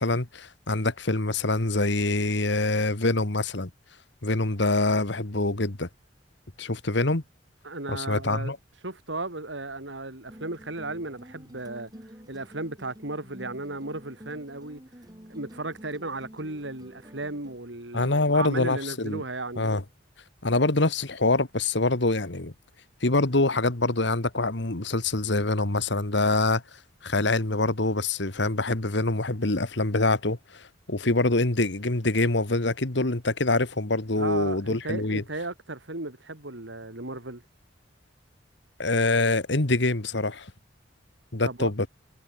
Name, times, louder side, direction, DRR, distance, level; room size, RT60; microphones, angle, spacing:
voice 1, 0.0-3.7 4.2-5.9 6.6-7.2 7.9-8.6 17.9-19.2 19.6-19.8 20.4-22.5 23.0-26.6 27.0-35.2 38.8-40.5 41.3-41.9, left 2 dB, 65° left, 1.9 m, -25 dB
voice 2, 7.6-8.5 8.8-11.9 12.3-14.8 15.3-19.7 34.2-37.4 41.4-41.7, right 2 dB, 70° right, 3.6 m, -35 dB
sound 1, 10.3-17.6, equal, 20° right, 3.9 m, -48 dB
head